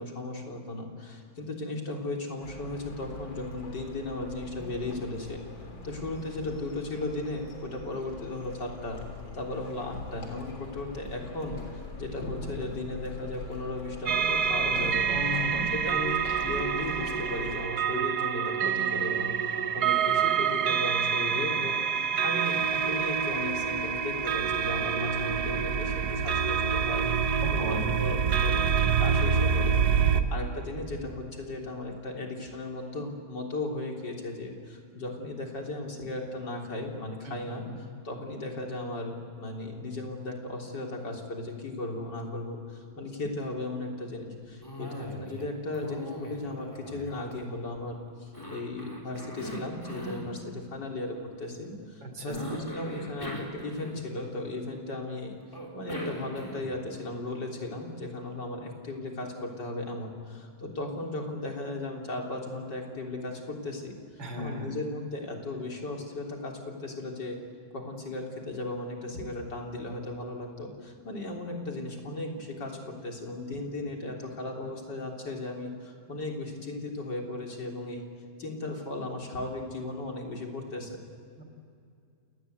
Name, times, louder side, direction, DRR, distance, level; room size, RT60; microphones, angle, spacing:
voice 1, 0.0-5.4 5.8-9.0 9.3-15.1 15.5-27.1 27.5-29.8 30.1-55.4 55.7-64.0 64.4-67.4 67.7-78.1 78.4-81.0, left 2 dB, 65° left, 1 dB, 4.1 m, -36 dB
sound 1, 2.4-17.6, left 2 dB, 85° left, 4.3 m, -42 dB
sound 2, 14.1-30.2, right 7 dB, 60° right, 1.7 m, -27 dB
voice 2, 15.1-15.7 27.4-28.1 37.2-37.9 52.0-52.6 64.2-64.8 81.4-81.5, left 1 dB, 75° right, 5 dB, 4.0 m, -37 dB
Cough, 44.6-45.5 45.7-47.8 48.3-50.3 52.3-54.3 55.5-56.8, equal, 10° left, 4.0 m, -40 dB
28.5 x 19.0 x 8.0 m, 2.4 s
omnidirectional pair, 2.0 m